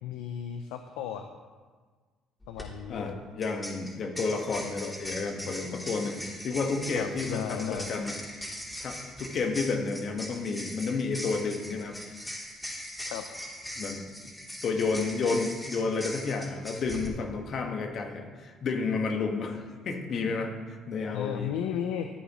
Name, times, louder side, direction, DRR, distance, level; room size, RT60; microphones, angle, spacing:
voice 1, 0.0-1.3 2.5-3.2 7.0-7.9 13.1-13.2 21.1-22.1, left 9 dB, 90° left, 7 dB, 0.5 m, -35 dB
sound 1, 2.4-2.7 3.4-17.1, equal, 10° left, 3.1 m, -40 dB
voice 2, 2.9-8.1 8.8-12.0 12.2-12.4 13.8-14.0 14.6-21.5, left 4 dB, 55° left, 3 dB, 1.5 m, -31 dB
14.0 x 9.7 x 3.1 m, 1.5 s
supercardioid pair, 75°, 0 cm